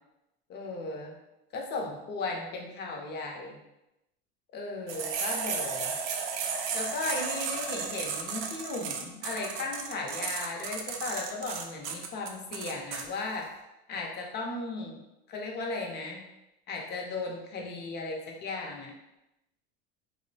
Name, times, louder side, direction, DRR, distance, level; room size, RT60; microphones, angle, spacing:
voice 1, 0.5-1.1 1.5-3.6 4.5-6.0 6.7-13.5 13.9-16.2 16.7-18.9, left 3 dB, 35° left, 0 dB, 0.5 m, -36 dB
sound 1, 4.9-13.0, right 6 dB, 60° right, 0.4 m, -34 dB
2.6 x 2.0 x 2.6 m, 0.91 s
supercardioid pair, 120°, 30 cm